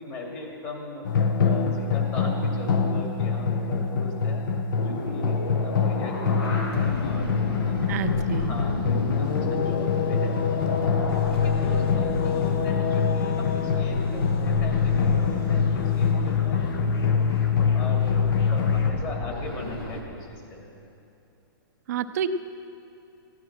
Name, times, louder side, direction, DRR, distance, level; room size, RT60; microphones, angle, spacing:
voice 1, 0.0-4.5 4.8-10.4 11.3-17.3 17.7-20.8, left 2 dB, 25° left, -1 dB, 2.5 m, -39 dB
sound 1, 1.0-18.9, left 6 dB, 55° left, 1.0 m, -24 dB
sound 2, 4.8-20.0, left 2 dB, 80° left, 2.2 m, -32 dB
voice 2, 7.9-8.5 21.9-22.3, right 9 dB, 45° right, 10 dB, 0.6 m, -28 dB
16.0 x 10.5 x 6.1 m, 2.8 s
hypercardioid pair, 165°, 12 cm